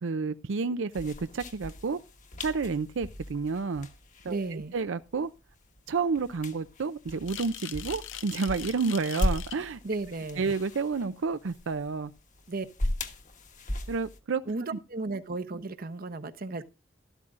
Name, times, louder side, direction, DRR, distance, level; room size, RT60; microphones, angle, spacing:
voice 1, 0.0-2.0 2.4-3.9 4.2-5.3 5.9-9.8 10.4-12.1 13.9-14.4 14.7-14.8, right 4 dB, 80° right, 0.5 m, -30 dB
foot walking, 0.9-14.2, left 1 dB, 40° left, 1.3 m, -37 dB
voice 2, 4.3-4.7 9.8-10.5 12.5-12.7 14.5-16.6, right 3 dB, 50° right, 0.9 m, -34 dB
sound 1, 7.3-9.6, left 11 dB, 75° left, 0.7 m, -41 dB
13.0 x 12.5 x 2.5 m
head